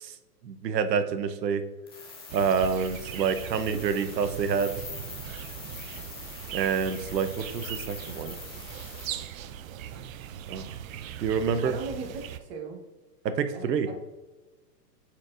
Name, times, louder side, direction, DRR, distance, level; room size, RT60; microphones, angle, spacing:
voice 1, 0.4-1.6 2.3-4.7 6.5-8.3 10.5-10.7 11.2-11.8 13.2-13.9, right 6 dB, 85° right, 11 dB, 0.9 m, -27 dB
sound 1, 1.9-9.1, left 4 dB, 20° left, 0.3 m, -44 dB
sound 2, 2.3-12.4, right 10 dB, 55° right, 0.5 m, -40 dB
voice 2, 11.6-12.8 13.5-13.9, right 4 dB, 40° right, 2 dB, 1.3 m, -38 dB
8.4 x 4.5 x 2.5 m, 1.1 s
hypercardioid pair, 145°, 48 cm